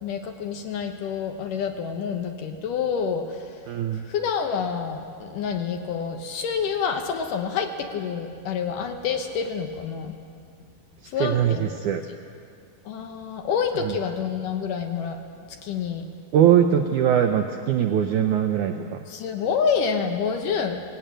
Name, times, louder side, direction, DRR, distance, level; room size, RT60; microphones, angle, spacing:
voice 1, 0.0-3.5 4.1-10.1 11.1-11.7 12.9-15.2 15.6-16.1 19.1-20.8, left 6 dB, 70° left, 5 dB, 2.4 m, -28 dB
voice 2, 3.7-4.0 11.2-12.0 13.8-13.9 16.3-19.0, right 9 dB, 85° right, 5 dB, 1.7 m, -21 dB
18.5 x 17.0 x 9.1 m, 2.3 s
omnidirectional pair, 4.5 m